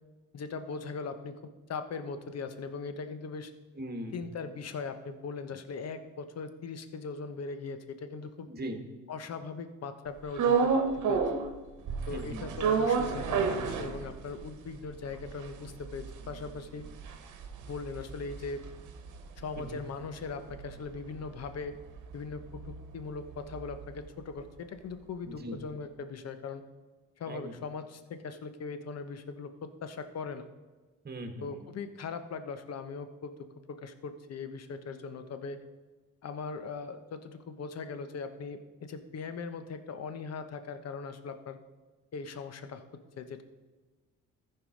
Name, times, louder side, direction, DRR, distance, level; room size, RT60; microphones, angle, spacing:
voice 1, 0.3-1.4 1.7-3.5 4.1-8.5 9.1-10.7 11.1-11.3 12.1-16.9 17.6-18.6 19.4-21.8 22.1-26.6 27.2-30.5 31.4-33.3 33.7-35.6 36.2-41.6 42.1-42.8 43.2-43.4, left 4 dB, 55° left, 9 dB, 1.0 m, -40 dB
voice 2, 3.7-4.2 8.5-8.8 12.1-12.6 19.6-19.8 25.3-25.6 27.3-27.5 31.0-31.6, right 1 dB, 30° right, 5 dB, 1.6 m, -40 dB
sound 1, 10.3-11.5 11.9-14.4 14.8-14.9 15.1-19.6 19.9-24.0, right 5 dB, 80° right, 1.1 m, -31 dB
14.0 x 4.8 x 5.1 m, 1.3 s
cardioid pair, 90°, 30 cm